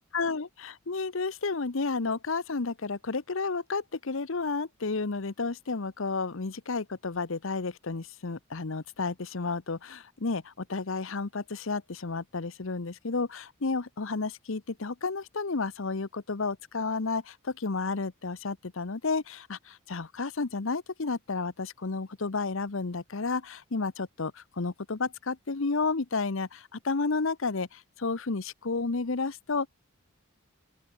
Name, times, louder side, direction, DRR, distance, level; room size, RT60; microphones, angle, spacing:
voice 1, 0.0-29.7, left 4 dB, 70° left, 0.9 m, -32 dB
open air
head